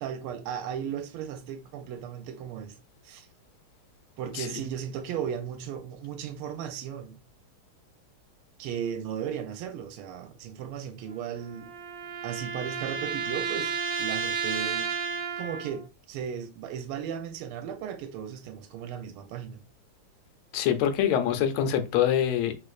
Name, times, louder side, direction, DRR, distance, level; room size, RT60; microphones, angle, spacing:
voice 1, 0.0-2.8 3.0-3.3 4.2-7.2 8.6-11.7 12.2-14.9 15.4-19.6, right 8 dB, 90° right, 1.5 m, -36 dB
sound 1, 11.1-15.8, right 6 dB, 75° right, 1.4 m, -32 dB
voice 2, 20.5-22.5, left 9 dB, 80° left, 1.4 m, -24 dB
3.1 x 3.1 x 2.4 m
omnidirectional pair, 2.3 m